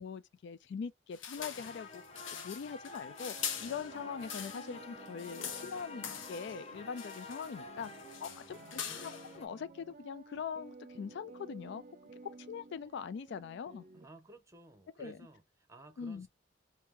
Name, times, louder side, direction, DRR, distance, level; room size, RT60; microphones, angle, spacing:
voice 1, 0.0-2.0 2.3-7.9 8.2-11.8 12.2-13.9 15.0-15.2 16.0-16.3, left 6 dB, 60° left, 0.3 m, -42 dB
sound 1, 1.1-4.8 5.1-6.6 7.0-7.6 7.8-9.3, left 7 dB, 80° left, 0.9 m, -43 dB
sound 2, 1.4-9.5, left 3 dB, 30° left, 0.7 m, -50 dB
sound 3, 3.1-14.1, right 3 dB, 45° right, 0.5 m, -54 dB
voice 2, 3.6-3.9 8.2-9.1 13.9-16.3, right 2 dB, 15° right, 0.8 m, -56 dB
2.9 x 2.8 x 3.5 m
head